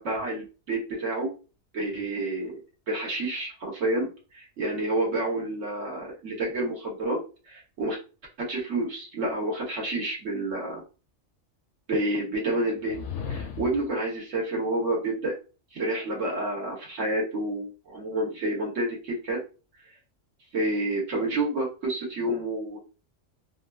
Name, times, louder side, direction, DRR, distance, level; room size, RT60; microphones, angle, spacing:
voice 1, 0.0-1.3 1.7-2.6 2.9-4.1 4.3-7.2 7.5-8.0 8.5-10.8 11.9-13.0 13.3-15.3 15.7-19.4 20.5-22.8, right 1 dB, 70° right, -3 dB, 1.4 m, -29 dB
sound 1, 12.8-14.0, left 6 dB, 70° left, 0.8 m, -35 dB
3.1 x 2.5 x 2.3 m, 0.33 s
omnidirectional pair, 1.3 m